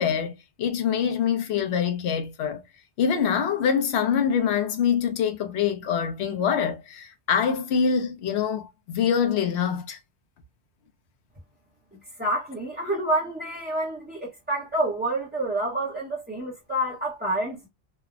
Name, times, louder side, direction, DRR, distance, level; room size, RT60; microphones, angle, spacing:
voice 1, 0.0-2.6 3.0-10.0, left 7 dB, 75° left, 0.9 m, -25 dB
voice 2, 12.2-17.7, right 1 dB, 10° right, 0.6 m, -28 dB
3.3 x 2.0 x 2.3 m
omnidirectional pair, 1.1 m